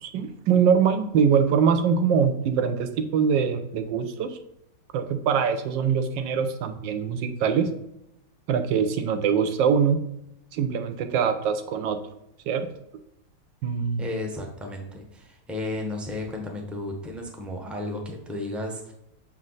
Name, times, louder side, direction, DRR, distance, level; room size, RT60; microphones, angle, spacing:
voice 1, 0.0-4.4 4.9-7.7 8.5-10.0 10.5-12.0 12.5-12.7 13.6-14.0, right 7 dB, 80° right, 9 dB, 1.4 m, -23 dB
voice 2, 14.0-18.9, left 2 dB, ahead, 1 dB, 0.3 m, -33 dB
6.3 x 4.2 x 3.9 m, 0.82 s
omnidirectional pair, 2.0 m